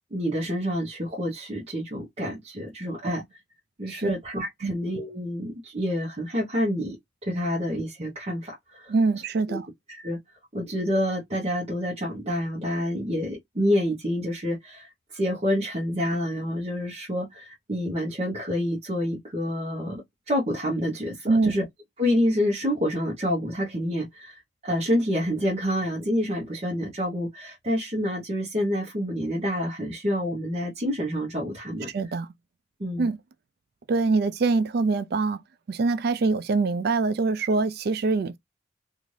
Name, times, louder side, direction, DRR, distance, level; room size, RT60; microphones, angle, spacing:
voice 1, 0.1-3.2 3.8-7.0 7.2-8.9 9.5-9.6 9.9-10.2 10.5-21.6 22.0-31.9 32.8-33.1, equal, 35° right, 0.9 m, -28 dB
voice 2, 8.9-9.7 21.3-21.5 31.9-32.3 33.0-33.2 33.9-35.4 35.7-38.4, right 3 dB, 55° right, 0.4 m, -24 dB
2.6 x 2.5 x 3.1 m
head